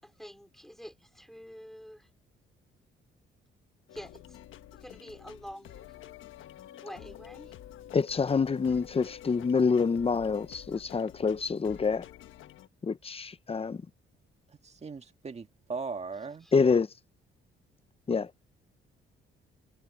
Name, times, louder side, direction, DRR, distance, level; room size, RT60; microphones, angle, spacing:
voice 1, 0.0-2.1 3.9-4.4 4.7-6.0 6.8-7.5 16.2-16.5, equal, ahead, 5.0 m, -47 dB
sound 1, 3.9-12.7, left 12 dB, 80° left, 1.3 m, -49 dB
voice 2, 7.9-12.0 12.8-13.8 16.5-16.9 18.1-18.3, left 5 dB, 30° left, 1.0 m, -27 dB
voice 3, 14.6-16.5, right 4 dB, 35° right, 1.9 m, -38 dB
cardioid pair, 90°, 20 cm